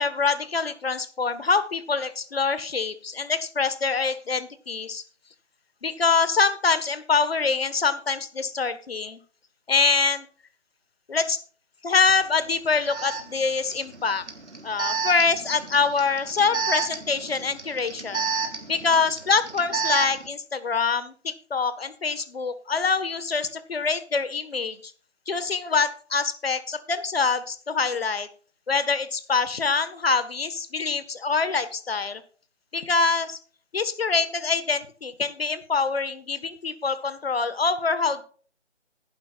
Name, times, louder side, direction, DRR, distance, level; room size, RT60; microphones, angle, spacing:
voice 1, 0.0-5.0 5.8-9.2 9.7-10.3 11.1-11.4 11.8-14.2 14.6-18.3 18.7-24.9 25.3-28.3 28.7-32.2 32.7-33.4 33.7-38.2, left 4 dB, 55° left, 12 dB, 1.6 m, -25 dB
Alarm, 12.1-12.2 12.9-20.3, right 5 dB, 70° right, 3.4 m, -31 dB
15.5 x 11.5 x 2.5 m, 0.43 s
figure-of-eight pair, 155°, 36 cm